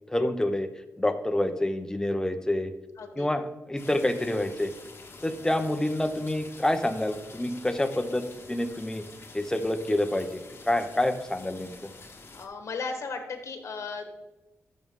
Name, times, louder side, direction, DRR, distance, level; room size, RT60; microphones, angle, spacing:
voice 1, 0.1-0.7 1.0-2.7 3.2-4.7 5.2-9.0 9.3-11.7, left 1 dB, 10° left, 8 dB, 0.8 m, -27 dB
voice 2, 3.0-3.3 12.3-14.1, left 4 dB, 65° left, 6 dB, 1.4 m, -35 dB
sound 1, 3.8-12.5, left 3 dB, 50° left, 1.5 m, -48 dB
13.5 x 6.2 x 3.7 m, 1.1 s
cardioid pair, 90°, 5 cm